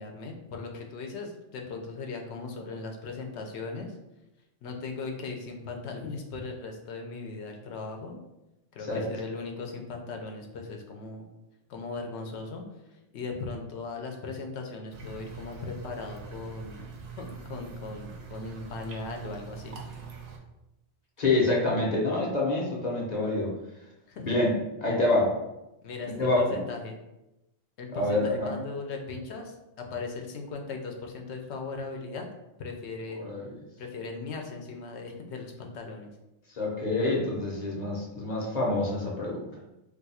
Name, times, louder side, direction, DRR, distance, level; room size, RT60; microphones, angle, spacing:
voice 1, 0.0-3.9 4.6-8.2 8.7-11.3 11.7-16.8 17.2-19.7 24.1-24.4 25.8-27.0 27.8-32.3 32.6-33.3 33.8-36.1, left 4 dB, 75° left, 3 dB, 0.9 m, -38 dB
sound 1, 14.9-20.4, right 6 dB, 60° right, 0.7 m, -43 dB
voice 2, 21.2-23.5 24.2-24.5 24.8-25.3 26.1-26.6 28.0-28.5 33.2-33.5 36.6-39.5, left 2 dB, 45° left, -3 dB, 0.8 m, -26 dB
2.6 x 2.3 x 4.1 m, 0.94 s
omnidirectional pair, 1.2 m